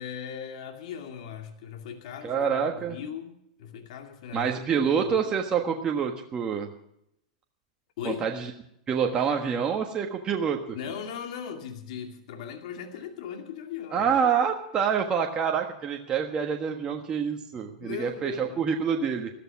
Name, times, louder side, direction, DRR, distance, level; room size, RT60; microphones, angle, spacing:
voice 1, 0.0-5.3 8.0-8.3 10.7-14.1 17.7-18.7, left 8 dB, 65° left, 4 dB, 2.4 m, -38 dB
voice 2, 2.2-3.0 4.3-6.7 8.0-8.5 8.9-10.6 13.9-19.3, right 7 dB, 25° right, 2 dB, 1.5 m, -27 dB
14.0 x 13.5 x 5.9 m, 0.76 s
hypercardioid pair, 125°, 4 cm